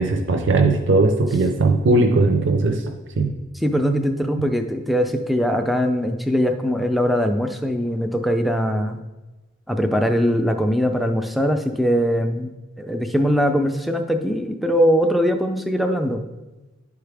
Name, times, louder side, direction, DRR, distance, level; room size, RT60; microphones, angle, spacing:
voice 1, 0.0-2.8 3.2-3.3, right 3 dB, 65° right, 4 dB, 0.6 m, -18 dB
voice 2, 3.6-9.0 9.7-12.5 12.8-16.3, equal, ahead, 5 dB, 0.4 m, -21 dB
11.0 x 4.7 x 3.4 m, 1.2 s
head